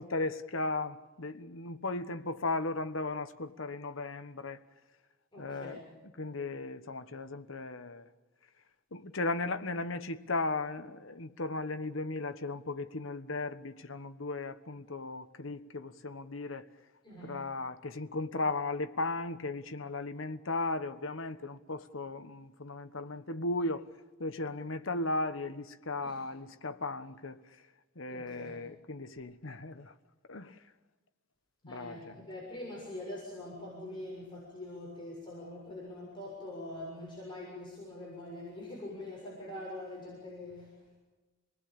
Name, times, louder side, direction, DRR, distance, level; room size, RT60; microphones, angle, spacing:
voice 1, 0.0-4.6 5.4-5.8 6.2-8.1 8.9-16.7 17.2-23.9 24.2-27.4 27.9-29.9 30.3-30.6 31.6-32.3, left 2 dB, 70° left, 1.3 m, -36 dB
voice 2, 5.3-5.8 17.0-17.4 26.0-26.2 28.1-28.5 31.7-40.9, left 1 dB, 25° left, 6.9 m, -44 dB
27.5 x 20.0 x 8.8 m
head